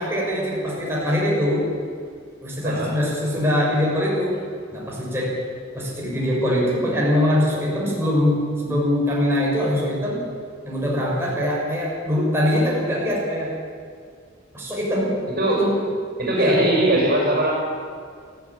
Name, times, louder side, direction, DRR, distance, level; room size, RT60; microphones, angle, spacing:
voice 1, 0.0-1.7 2.4-4.4 4.7-5.4 5.7-10.2 10.6-13.5 14.5-15.1 15.6-15.8 16.3-16.6, left 1 dB, 15° right, -5 dB, 6.5 m, -22 dB
voice 2, 2.6-3.0 15.3-15.6 16.2-17.5, right 1 dB, 50° right, -1 dB, 6.3 m, -20 dB
18.0 x 15.5 x 9.8 m, 2.2 s
head